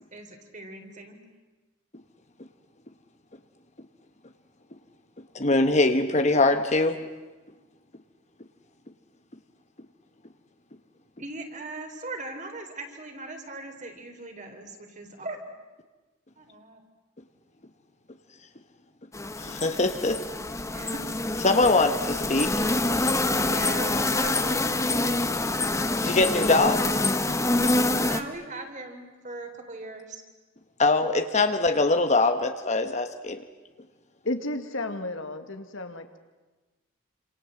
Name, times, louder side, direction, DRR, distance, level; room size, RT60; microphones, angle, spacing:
voice 1, 0.1-1.2 11.2-15.5 16.4-16.8 20.7-21.0 23.5-24.8 28.0-30.2, right 2 dB, 40° right, 5 dB, 3.8 m, -39 dB
voice 2, 5.3-7.0 19.4-20.2 21.4-22.6 25.9-26.9 30.8-33.4, left 2 dB, 35° left, 8 dB, 1.2 m, -22 dB
sound 1, 19.1-28.2, left 2 dB, 15° left, 1.2 m, -26 dB
voice 3, 34.3-36.2, left 2 dB, 75° left, 7 dB, 2.2 m, -32 dB
27.5 x 27.0 x 7.8 m, 1.2 s
head